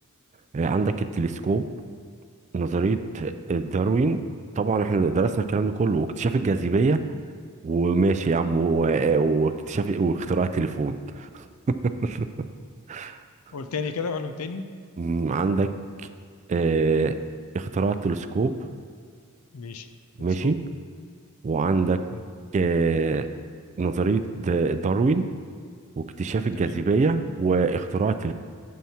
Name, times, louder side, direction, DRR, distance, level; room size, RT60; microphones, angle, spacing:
voice 1, 0.5-1.7 2.5-4.2 4.6-7.0 7.6-12.3 12.9-13.2 15.0-15.7 16.0-16.1 16.5-17.2 17.5-18.5 20.2-20.6 21.4-22.0 22.5-23.3 23.8-25.3 26.0-28.3, right 4 dB, 35° right, 10 dB, 0.3 m, -24 dB
voice 2, 13.5-14.6 19.5-19.9 20.2-20.5 22.1-22.2 26.5-26.8, left 4 dB, 85° left, 9 dB, 0.5 m, -33 dB
9.0 x 7.6 x 2.8 m, 2.2 s
head